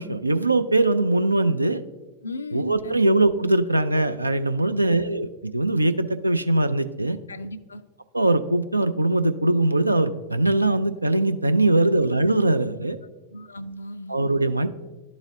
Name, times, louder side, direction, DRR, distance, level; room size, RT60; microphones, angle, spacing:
voice 1, 0.0-1.8 2.5-7.2 8.1-13.0 14.1-14.7, right 2 dB, 85° right, 10 dB, 0.3 m, -21 dB
voice 2, 2.2-3.1 4.7-5.0 7.3-7.8 11.8-12.1 13.3-14.2, left 1 dB, 75° left, 14 dB, 0.3 m, -36 dB
11.5 x 3.9 x 2.7 m, 1.1 s
figure-of-eight pair, 90°, 0 cm